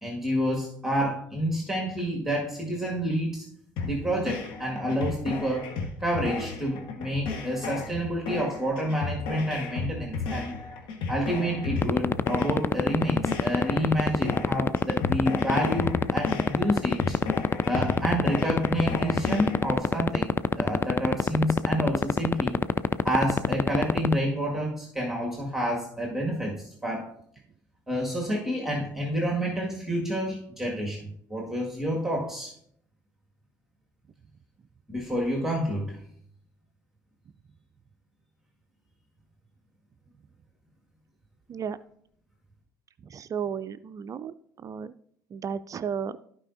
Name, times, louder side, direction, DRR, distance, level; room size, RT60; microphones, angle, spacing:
voice 1, 0.0-3.5 3.8-5.7 6.0-10.6 11.1-17.2 17.6-22.6 23.0-27.1 27.9-32.5 34.9-36.0, equal, 5° right, -1 dB, 1.8 m, -29 dB
sound 1, 3.8-19.8, left 4 dB, 60° left, 1.3 m, -34 dB
sound 2, 11.8-24.1, left 5 dB, 25° left, 0.4 m, -21 dB
voice 2, 43.0-44.3 44.6-44.9 45.3-46.2, right 7 dB, 35° right, 14 dB, 0.4 m, -33 dB
14.5 x 4.9 x 2.6 m, 0.67 s
figure-of-eight pair, 55°, 10 cm